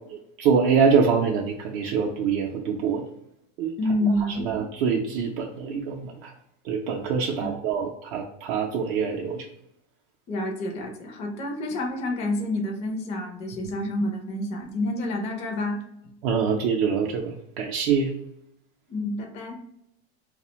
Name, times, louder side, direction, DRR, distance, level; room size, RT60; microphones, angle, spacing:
voice 1, 0.1-3.1 3.6-3.7 4.4-6.3 6.7-9.4 16.2-18.1, right 6 dB, 60° right, 0 dB, 0.4 m, -24 dB
voice 2, 3.8-4.5 7.4-7.5 10.3-15.8 18.9-19.6, left 1 dB, 20° left, 1 dB, 0.4 m, -28 dB
2.4 x 2.1 x 2.9 m, 0.80 s
supercardioid pair, 140°, 32 cm